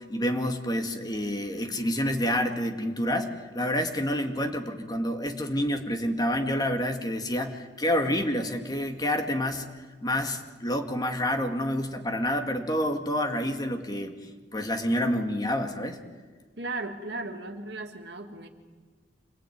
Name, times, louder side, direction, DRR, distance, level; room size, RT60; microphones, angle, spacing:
voice 1, 0.0-9.7 10.0-14.1 14.5-16.0, equal, 20° left, 5 dB, 2.1 m, -28 dB
voice 2, 16.6-18.5, right 2 dB, 65° right, 5 dB, 2.5 m, -36 dB
26.5 x 19.5 x 9.5 m, 1.5 s
head